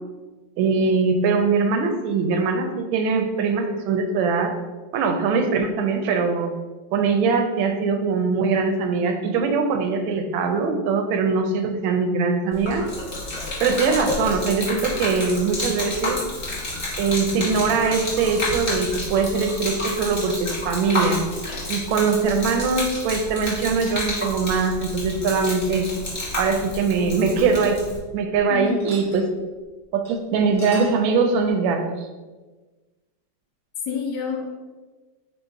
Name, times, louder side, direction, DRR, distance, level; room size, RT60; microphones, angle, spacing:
voice 1, 0.6-4.5 4.9-6.5 6.9-12.9 13.6-16.2 17.0-21.2 21.7-25.9 26.4-27.8 28.1-29.3 29.9-31.8, right 4 dB, 80° right, 5 dB, 1.3 m, -22 dB
Gurgling / Liquid, 12.5-28.0, left 1 dB, 30° left, 0.9 m, -30 dB
sound 1, 27.2-28.4 28.6-29.3 29.6-29.7 30.0-30.1 30.4-31.1, equal, ahead, 0.7 m, -42 dB
voice 2, 28.5-28.9 33.9-34.5, left 6 dB, 75° left, 2 dB, 1.1 m, -28 dB
4.5 x 2.3 x 4.6 m, 1.3 s
omnidirectional pair, 2.2 m